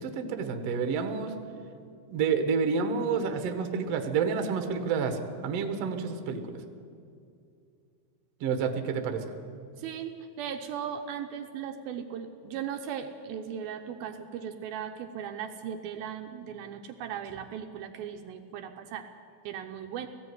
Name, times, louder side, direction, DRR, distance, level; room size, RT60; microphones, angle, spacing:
voice 1, 0.0-1.3 2.1-6.6 8.4-9.2, right 5 dB, 60° right, 6 dB, 1.8 m, -29 dB
voice 2, 9.8-19.0 19.4-20.1, right 8 dB, 75° right, 5 dB, 2.5 m, -37 dB
18.5 x 15.0 x 9.6 m, 2.5 s
omnidirectional pair, 4.7 m